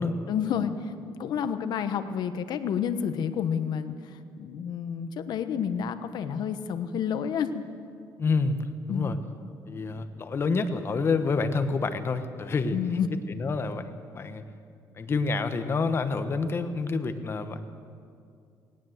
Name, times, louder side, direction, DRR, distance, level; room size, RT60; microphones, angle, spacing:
voice 1, 0.3-3.9 4.4-7.6 8.9-9.1 12.7-13.1, left 8 dB, 65° left, 10 dB, 1.2 m, -29 dB
voice 2, 8.2-8.6 8.9-9.2 9.7-13.0 13.3-14.4 14.9-17.6, left 4 dB, 30° left, 9 dB, 1.2 m, -28 dB
19.0 x 18.0 x 7.9 m, 2.4 s
cardioid pair, 145°, 8 cm